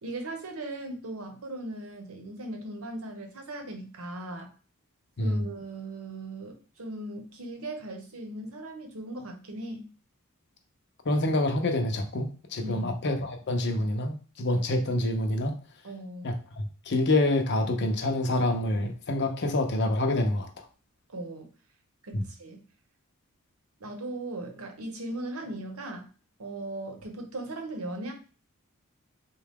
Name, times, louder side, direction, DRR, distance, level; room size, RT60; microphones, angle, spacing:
voice 1, 0.0-4.5 5.2-9.9 12.6-13.0 15.8-16.3 21.1-21.5 22.0-22.6 23.8-26.1 26.4-28.1, right 1 dB, 75° right, 4 dB, 0.9 m, -38 dB
voice 2, 11.0-15.5 16.2-20.5 22.1-22.3, left 1 dB, 55° left, 4 dB, 0.7 m, -27 dB
3.8 x 2.3 x 3.5 m, 0.37 s
head